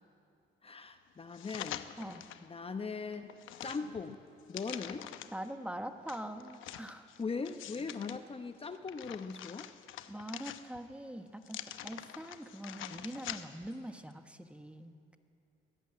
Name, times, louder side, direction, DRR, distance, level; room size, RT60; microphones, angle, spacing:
voice 1, 0.6-1.8 2.4-3.3 3.6-4.2 4.5-5.1 7.2-9.7, left 4 dB, 30° left, 8 dB, 0.9 m, -40 dB
sound 1, 1.3-2.5 2.9-5.5 6.1-8.2 8.6-10.9 11.4-13.7 14.1-14.2, left 12 dB, 85° left, 0.9 m, -45 dB
voice 2, 5.3-7.1 10.1-15.2, right 1 dB, 5° right, 7 dB, 1.3 m, -43 dB
22.0 x 15.0 x 9.0 m, 2.6 s
cardioid pair, 90°, 20 cm